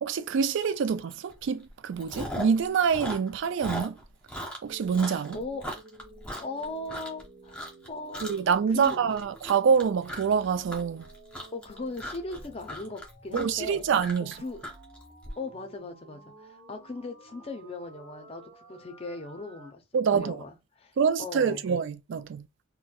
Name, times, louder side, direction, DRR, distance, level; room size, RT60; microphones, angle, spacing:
voice 1, 0.0-4.0 4.6-5.4 8.2-11.0 13.3-14.3 19.9-20.4 21.0-22.5, right 6 dB, 65° right, 0.3 m, -26 dB
Chewing mastication, 1.1-1.3 1.6-2.6 2.9-7.2 7.5-8.5 8.8-15.3, equal, 5° left, 0.9 m, -38 dB
sound 1, 4.7-19.7, right 2 dB, 45° right, 1.8 m, -52 dB
voice 2, 5.1-5.6 6.4-7.6 7.9-8.3 8.7-9.0 11.5-13.8 14.2-14.6 15.4-19.8 20.1-20.5 20.8-20.9 21.2-21.6, left 2 dB, 30° left, 0.6 m, -38 dB
4.2 x 2.2 x 2.3 m
head